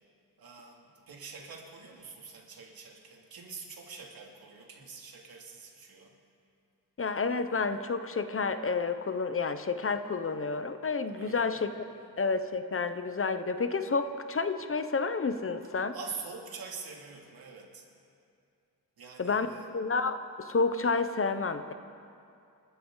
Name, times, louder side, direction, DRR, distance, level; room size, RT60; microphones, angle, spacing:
voice 1, 0.4-6.1 11.2-12.1 15.9-17.9 19.0-19.7, right 5 dB, 80° right, -1 dB, 2.7 m, -45 dB
voice 2, 7.0-11.7 12.2-15.9 19.2-21.7, left 4 dB, 35° left, 10 dB, 0.9 m, -30 dB
29.0 x 12.5 x 3.9 m, 2.5 s
cardioid pair, 90°, 36 cm